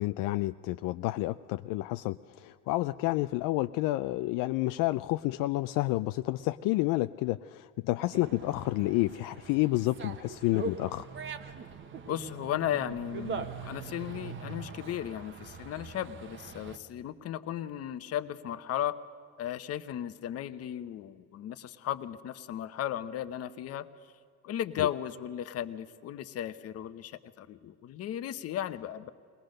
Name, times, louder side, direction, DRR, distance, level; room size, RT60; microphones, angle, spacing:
voice 1, 0.0-2.2 2.4-11.1 24.8-24.9, left 18 dB, 75° left, 11 dB, 0.5 m, -29 dB
Dog, 8.1-16.8, right 5 dB, 35° right, 1.1 m, -42 dB
voice 2, 12.1-18.9 19.4-23.9 24.4-29.1, left 11 dB, 45° left, 12 dB, 0.9 m, -35 dB
22.0 x 18.5 x 6.5 m, 2.2 s
cardioid pair, 140°, 33 cm